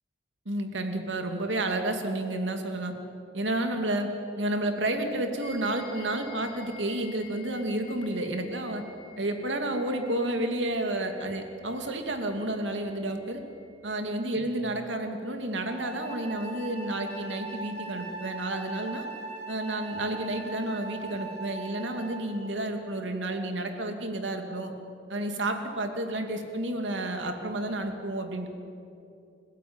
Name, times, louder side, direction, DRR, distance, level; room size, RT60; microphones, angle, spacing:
voice 1, 0.5-2.9 3.3-4.1 4.4-8.8 9.2-13.4 13.8-19.0 19.5-24.7 25.1-28.5, right 1 dB, 75° right, 5 dB, 2.6 m, -31 dB
sound 1, 5.4-14.1, left 3 dB, 25° right, 6.9 m, -51 dB
Wind instrument woodwind instrument, 15.6-22.4, right 3 dB, 10° left, 5.9 m, -40 dB
29.5 x 16.0 x 8.9 m, 2.6 s
head